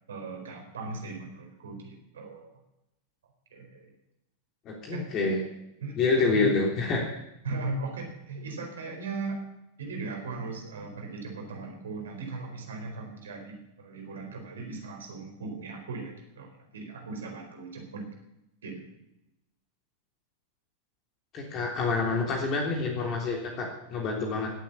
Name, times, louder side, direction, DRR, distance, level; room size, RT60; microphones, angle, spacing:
voice 1, 0.1-2.6 3.5-3.9 4.9-5.1 5.8-6.5 7.4-9.4 9.8-18.1 18.6-18.9, right 3 dB, 65° right, 2 dB, 4.4 m, -38 dB
voice 2, 4.6-5.4 6.0-7.1 21.3-24.5, left 4 dB, 35° left, 0 dB, 3.3 m, -27 dB
18.0 x 8.3 x 8.4 m, 0.88 s
figure-of-eight pair, 90°, 0 cm